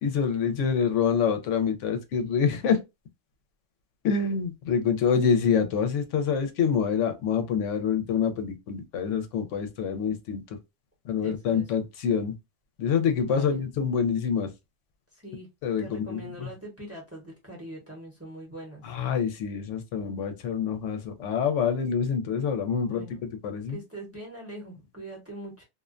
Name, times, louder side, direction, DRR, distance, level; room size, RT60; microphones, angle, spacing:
voice 1, 0.0-2.8 4.0-10.4 11.1-12.3 12.8-14.5 15.6-16.5 18.8-23.0 23.4-23.8, left 6 dB, 80° left, 0.9 m, -26 dB
voice 2, 11.2-11.7 13.2-13.6 15.1-15.5 15.8-18.8 22.8-23.2 23.7-25.6, right 1 dB, 15° right, 0.8 m, -42 dB
2.4 x 2.1 x 2.4 m
omnidirectional pair, 1.2 m